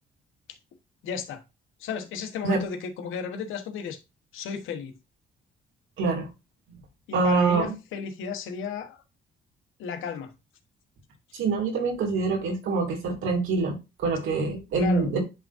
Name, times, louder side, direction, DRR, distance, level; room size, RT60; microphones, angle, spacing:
voice 1, 1.0-1.4 1.8-4.0 4.3-4.9 7.1-9.0 9.8-10.3 14.8-15.1, left 6 dB, 85° left, 1.3 m, -34 dB
voice 2, 6.0-6.3 6.7-6.8 7.1-7.7 11.3-15.2, right 4 dB, 85° right, 2.5 m, -25 dB
10.5 x 3.7 x 2.6 m
cardioid pair, 90°, 20 cm